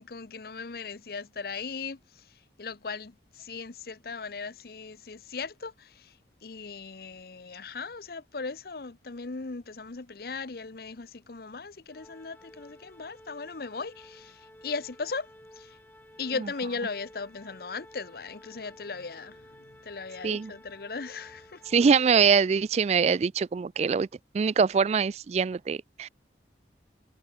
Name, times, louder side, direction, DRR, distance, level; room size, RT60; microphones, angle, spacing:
voice 1, 0.0-6.2 6.4-15.3 15.6-15.8 16.2-21.7, left 4 dB, 60° left, 0.8 m, -38 dB
Organ, 11.9-22.8, left 1 dB, 10° left, 4.7 m, -53 dB
voice 2, 21.7-24.1 24.3-26.1, right 6 dB, 40° right, 0.3 m, -23 dB
head